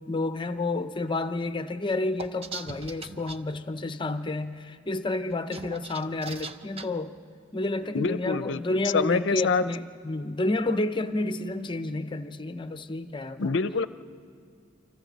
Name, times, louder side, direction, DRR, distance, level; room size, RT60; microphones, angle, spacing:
voice 1, 0.1-7.1 7.5-13.6, left 2 dB, 25° left, 0.7 m, -30 dB
sound 1, 2.2-3.4 5.3-6.9, right 4 dB, 30° right, 0.7 m, -39 dB
voice 2, 7.9-9.6 13.4-13.9, left 4 dB, 65° left, 0.6 m, -26 dB
29.5 x 25.5 x 4.1 m
head